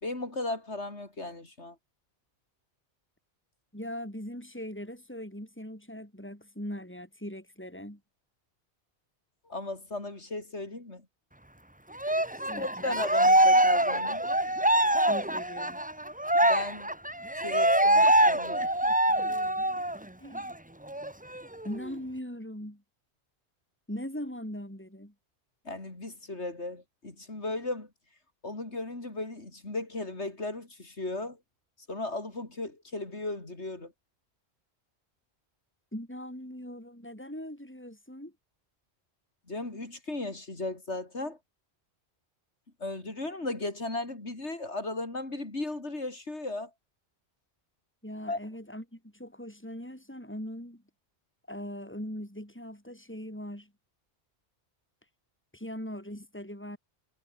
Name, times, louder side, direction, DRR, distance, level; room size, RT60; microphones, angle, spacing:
voice 1, 0.0-1.8 9.5-11.0 12.6-14.2 16.5-16.9 17.4-18.7 25.6-27.9 28.4-31.4 31.9-33.9 39.5-41.4 42.8-46.7 48.3-48.4, left 2 dB, 85° left, 4.7 m, -36 dB
voice 2, 3.7-8.0 12.3-12.9 15.0-15.8 20.2-20.6 21.6-22.8 23.9-25.1 35.9-38.3 48.0-50.8 51.5-53.7 55.5-56.8, equal, 10° left, 6.3 m, -40 dB
Cheering, 12.0-20.0 20.3-20.5 20.9-21.9, right 1 dB, 10° right, 1.2 m, -24 dB
omnidirectional pair, 1.1 m